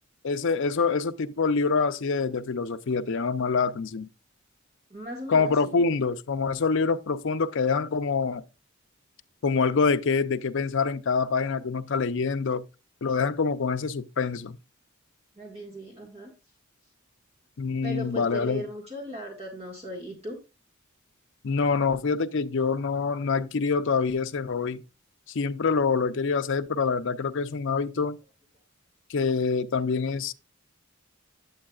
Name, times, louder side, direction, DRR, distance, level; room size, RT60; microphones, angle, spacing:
voice 1, 0.2-4.1 5.3-8.4 9.4-12.7 13.0-14.6 17.6-18.6 21.4-24.8 25.3-28.2 29.1-30.3, left 4 dB, 60° left, 0.6 m, -26 dB
voice 2, 4.9-5.8 15.3-16.3 17.8-20.4, equal, 30° right, 1.7 m, -38 dB
8.6 x 8.6 x 2.4 m
head